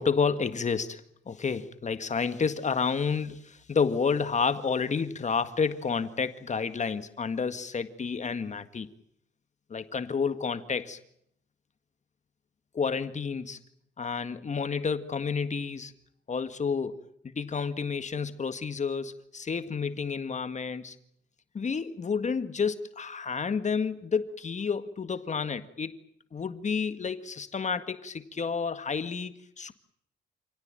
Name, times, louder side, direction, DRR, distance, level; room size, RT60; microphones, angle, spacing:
voice 1, 0.0-8.9 9.7-11.0 12.7-13.6 14.0-15.9 16.3-21.0 21.5-26.0 26.3-29.7, left 5 dB, 35° left, 11 dB, 1.8 m, -30 dB
28.5 x 17.5 x 8.9 m, 0.72 s
cardioid pair, 90°, 20 cm